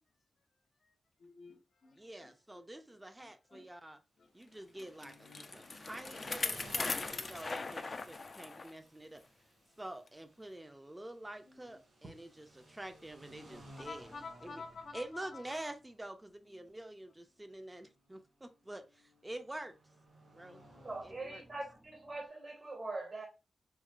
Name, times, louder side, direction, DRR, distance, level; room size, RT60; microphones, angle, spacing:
voice 1, 1.2-3.7 4.2-4.3 4.8-5.7 9.1-9.3 11.4-11.8 13.8-15.5 16.5-16.7, left 4 dB, 60° left, 0.8 m, -52 dB
voice 2, 2.0-4.0 4.3-9.2 9.8-14.1 14.4-14.6 14.9-19.7 20.3-20.6 21.0-21.4, right 1 dB, 15° right, 0.5 m, -47 dB
sound 1, 4.4-22.3, right 1 dB, 55° right, 1.9 m, -59 dB
Bicycle, 4.8-8.7 9.2-9.3 10.1-10.2, left 3 dB, 40° left, 0.3 m, -39 dB
voice 3, 20.8-23.3, right 2 dB, 40° right, 0.9 m, -42 dB
4.6 x 2.0 x 2.4 m
wide cardioid pair, 105°, 0 cm